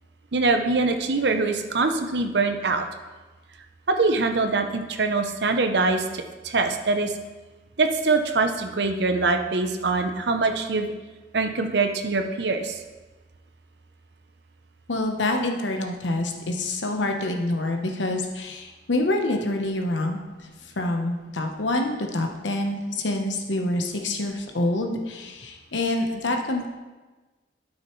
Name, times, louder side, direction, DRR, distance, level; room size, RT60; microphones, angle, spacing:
voice 1, 0.3-2.9 3.9-7.1 7.8-10.9 11.3-12.8, right 3 dB, 65° right, 6 dB, 0.7 m, -23 dB
voice 2, 14.9-20.5 20.8-26.7, left 2 dB, 85° left, 3 dB, 1.0 m, -26 dB
12.0 x 6.3 x 3.2 m, 1.2 s
head